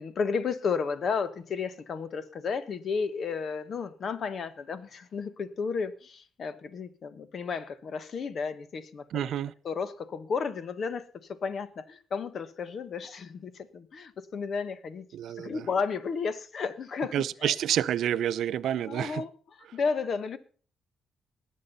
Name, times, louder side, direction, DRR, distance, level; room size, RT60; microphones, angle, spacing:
voice 1, 0.0-15.1 15.3-17.1 17.4-17.6 18.9-20.4, left 5 dB, 50° left, 14 dB, 1.3 m, -33 dB
voice 2, 9.1-9.5 15.1-15.6 17.1-19.2, right 10 dB, 75° right, 15 dB, 0.6 m, -29 dB
19.5 x 7.7 x 5.5 m, 0.42 s
cardioid pair, 90°, 0 cm